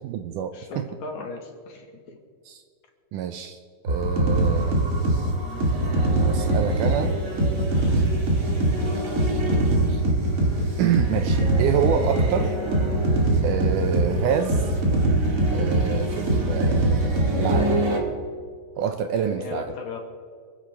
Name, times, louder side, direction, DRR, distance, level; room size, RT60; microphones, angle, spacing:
voice 1, 0.0-0.9 2.5-2.6 3.1-3.6 3.8-4.8 6.2-7.2 9.9-10.0 10.8-12.5 13.4-14.6 15.5-16.9 17.4-17.8 18.8-19.8, right 8 dB, 80° right, 7 dB, 2.0 m, -27 dB
voice 2, 0.5-2.2 7.7-8.0 19.1-20.0, left 4 dB, 60° left, 3 dB, 2.5 m, -37 dB
sound 1, 3.9-18.0, right 1 dB, 30° right, 1.7 m, -22 dB
28.5 x 10.0 x 3.4 m, 2.1 s
omnidirectional pair, 4.1 m